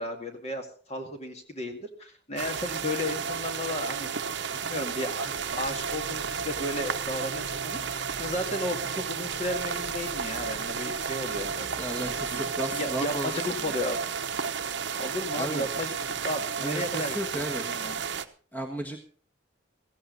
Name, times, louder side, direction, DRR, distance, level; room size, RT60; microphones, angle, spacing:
voice 1, 0.0-4.1 4.6-11.7 12.1-12.5 12.7-14.0 15.0-15.9 16.2-17.2 17.6-18.0, left 1 dB, 35° left, 4 dB, 2.2 m, -34 dB
sound 1, 2.4-18.2, right 6 dB, 55° right, 0.9 m, -32 dB
sound 2, 5.4-8.6 9.3-12.6, right 1 dB, 60° left, 2.5 m, -52 dB
voice 2, 11.7-13.8 15.3-15.6 16.6-17.6 18.5-19.1, right 1 dB, 10° left, 3 dB, 1.5 m, -34 dB
16.0 x 15.5 x 4.0 m, 0.43 s
head